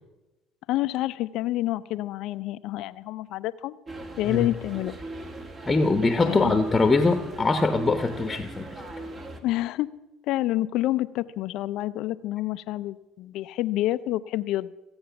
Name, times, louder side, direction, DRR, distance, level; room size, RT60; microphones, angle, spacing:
voice 1, 0.7-3.8 4.2-5.0 6.2-6.6 9.4-9.9 10.3-14.7, left 15 dB, 65° left, 14 dB, 0.4 m, -28 dB
sound 1, 3.9-9.4, right 2 dB, 35° right, 2.1 m, -39 dB
voice 2, 5.7-8.7, left 3 dB, 20° left, 9 dB, 1.0 m, -22 dB
16.0 x 8.7 x 6.9 m, 1.0 s
hypercardioid pair, 80°, 0 cm